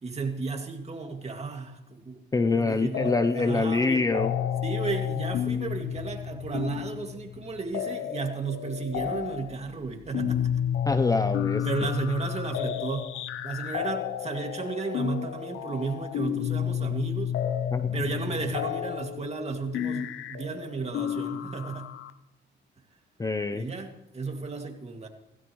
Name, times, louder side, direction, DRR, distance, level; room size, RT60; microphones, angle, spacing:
voice 1, 0.0-2.2 2.5-4.0 4.6-10.5 11.6-13.1 13.4-17.3 17.9-21.9 23.5-25.1, right 4 dB, 35° right, 4 dB, 2.1 m, -33 dB
voice 2, 2.3-4.3 10.9-11.9 17.7-17.8 23.2-23.7, left 3 dB, 15° left, 10 dB, 0.6 m, -25 dB
sound 1, 2.9-3.6 3.8-22.1, left 9 dB, 75° left, 0.7 m, -31 dB
16.5 x 16.0 x 3.1 m, 0.92 s
cardioid pair, 90°, 20 cm